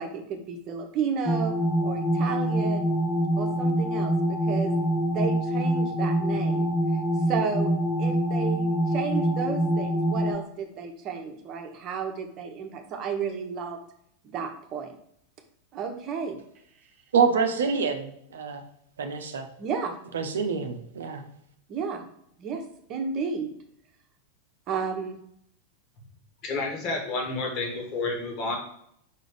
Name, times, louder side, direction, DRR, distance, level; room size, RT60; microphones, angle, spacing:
voice 1, 0.0-1.5 1.8-2.9 3.4-4.7 5.1-6.7 7.3-7.7 8.0-13.8 14.2-14.9 15.7-16.4 19.6-19.9 21.7-22.0 22.4-22.6 22.9-23.5 24.7-25.2, right 6 dB, 35° right, 4 dB, 1.1 m, -32 dB
sound 1, 1.3-10.4, equal, 10° left, 0.6 m, -25 dB
voice 2, 17.1-18.6 19.0-19.5 20.1-21.2, right 5 dB, 65° right, 6 dB, 0.7 m, -26 dB
voice 3, 26.4-28.6, left 3 dB, 40° left, 1 dB, 1.8 m, -30 dB
5.6 x 3.9 x 4.9 m, 0.71 s
figure-of-eight pair, 90°, 0 cm